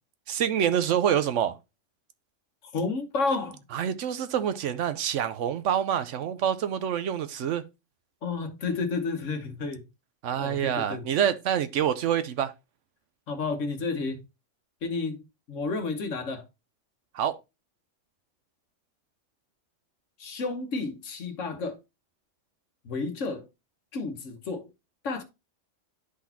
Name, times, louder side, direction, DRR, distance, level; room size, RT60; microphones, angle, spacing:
voice 1, 0.3-1.5 3.7-7.6 10.2-12.5 17.1-17.4, right 9 dB, 75° right, 1.0 m, -26 dB
voice 2, 2.7-3.6 8.2-9.8 10.4-11.0 13.3-14.2 14.8-16.5 20.2-21.8 22.8-23.5 23.9-24.7 25.0-25.2, left 4 dB, 85° left, 1.4 m, -31 dB
11.0 x 4.0 x 2.8 m
omnidirectional pair, 1.3 m